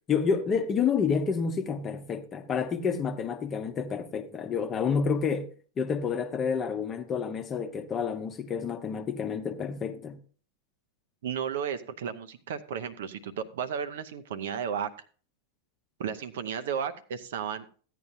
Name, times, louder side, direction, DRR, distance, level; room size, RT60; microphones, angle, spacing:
voice 1, 0.1-5.5 5.8-10.2, left 6 dB, 25° left, 0.9 m, -29 dB
voice 2, 11.2-14.9 16.0-17.6, right 7 dB, 60° right, 0.8 m, -33 dB
14.5 x 9.2 x 2.7 m
figure-of-eight pair, 90°, 0 cm